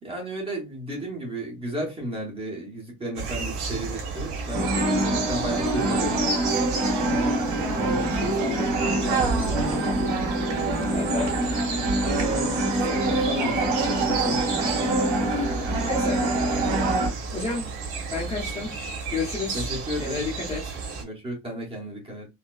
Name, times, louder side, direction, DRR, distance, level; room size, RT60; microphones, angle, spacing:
voice 1, 0.0-6.3 19.5-20.1 21.0-22.3, right 1 dB, 15° right, 1.1 m, -33 dB
sound 1, 3.1-21.0, right 4 dB, 80° right, 1.3 m, -32 dB
sound 2, 4.5-17.1, right 1 dB, 55° right, 1.6 m, -25 dB
voice 2, 7.0-7.4 7.7-10.3 10.9-11.4 12.1-15.2 15.8-16.2 17.3-17.7 18.1-18.8 19.1-20.8, left 3 dB, 20° left, 0.8 m, -34 dB
4.1 x 2.2 x 2.4 m
cardioid pair, 165°, 33 cm